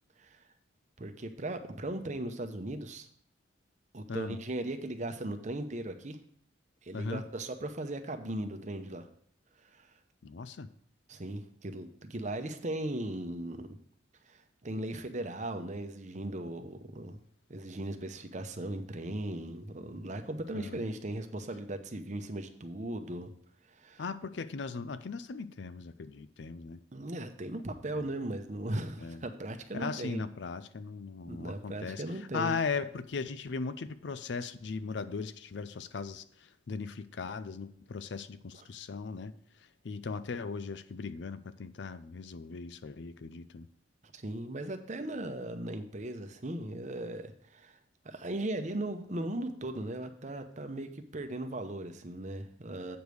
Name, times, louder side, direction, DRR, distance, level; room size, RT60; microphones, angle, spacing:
voice 1, 1.0-3.1 3.9-6.2 6.8-9.1 9.7-9.9 11.1-13.7 14.3-17.2 17.5-23.3 23.7-24.0 26.9-30.2 31.2-32.5 38.5-38.6 44.0-47.8 48.0-53.0, right 1 dB, 40° right, 7 dB, 0.8 m, -38 dB
voice 2, 4.1-4.4 6.9-7.2 10.2-10.7 20.5-20.8 24.0-26.8 27.9-28.1 29.0-29.2 29.7-32.0 32.3-36.2 36.7-39.3 39.8-43.7, left 4 dB, 65° left, 14 dB, 0.5 m, -38 dB
8.0 x 5.2 x 6.3 m, 0.63 s
head